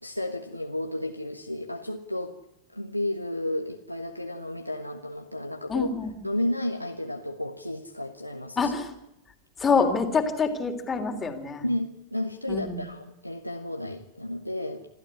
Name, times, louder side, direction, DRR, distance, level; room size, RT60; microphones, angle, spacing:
voice 1, 0.0-2.3 2.7-5.9 6.2-8.7 11.6-14.8, left 1 dB, 90° left, 3 dB, 1.4 m, -32 dB
voice 2, 5.7-6.3 8.6-8.9 9.6-11.6 12.5-12.8, left 4 dB, 20° left, 6 dB, 3.4 m, -26 dB
27.5 x 13.5 x 9.9 m, 0.87 s
figure-of-eight pair, 90°, 0 cm